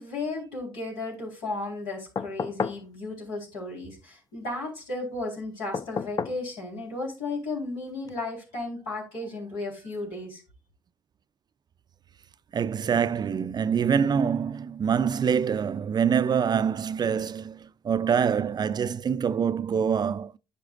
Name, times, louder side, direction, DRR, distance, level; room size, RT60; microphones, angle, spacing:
voice 1, 0.0-10.4, left 2 dB, 85° left, 4.2 m, -34 dB
sound 1, 2.2-2.9 5.7-6.4 8.1-8.2, left 5 dB, 35° left, 0.5 m, -31 dB
voice 2, 12.5-20.4, right 7 dB, 40° right, 0.4 m, -25 dB
10.5 x 6.4 x 2.5 m
hypercardioid pair, 60°, 11 cm